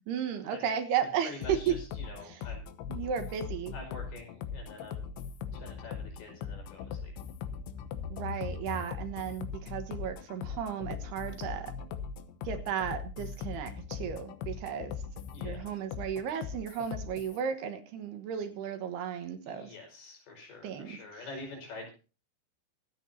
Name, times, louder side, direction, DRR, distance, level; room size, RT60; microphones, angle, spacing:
voice 1, 0.1-1.8 2.3-2.4 2.9-3.7 8.1-11.7 12.4-15.0 15.4-19.7 20.6-21.0, right 8 dB, 70° right, 8 dB, 3.2 m, -34 dB
voice 2, 1.0-2.6 3.7-5.1 5.5-7.1 15.3-15.7 19.4-21.9, left 3 dB, 60° left, 2 dB, 6.9 m, -46 dB
sound 1, 1.4-17.4, left 6 dB, 85° left, 3.3 m, -40 dB
26.5 x 9.2 x 2.8 m, 0.33 s
omnidirectional pair, 5.1 m